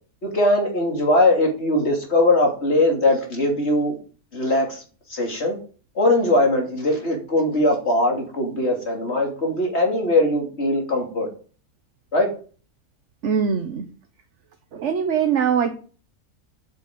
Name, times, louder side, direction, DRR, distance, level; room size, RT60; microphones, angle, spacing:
voice 1, 0.2-4.0 4.3-4.8 5.1-5.6 5.9-11.3 12.1-12.3, left 1 dB, 45° left, 1 dB, 3.1 m, -20 dB
voice 2, 13.2-13.8 14.7-15.8, right 7 dB, 55° right, 7 dB, 1.2 m, -22 dB
8.3 x 6.6 x 7.8 m, 0.40 s
omnidirectional pair, 1.6 m